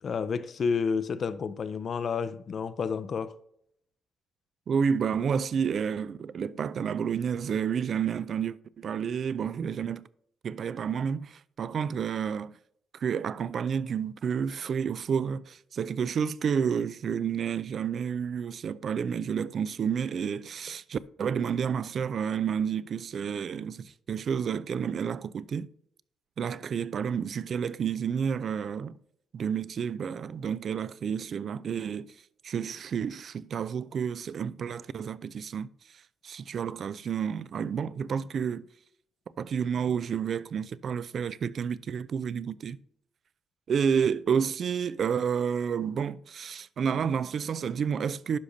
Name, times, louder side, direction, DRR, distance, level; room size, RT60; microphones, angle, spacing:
voice 1, 0.0-3.3, left 5 dB, 50° left, 0.5 m, -30 dB
voice 2, 4.7-10.0 10.4-12.5 12.9-25.7 26.4-29.0 29.3-32.1 32.4-38.6 39.4-42.8 43.7-48.4, right 7 dB, 55° right, 0.3 m, -30 dB
11.5 x 5.1 x 2.7 m
cardioid pair, 90°, 0 cm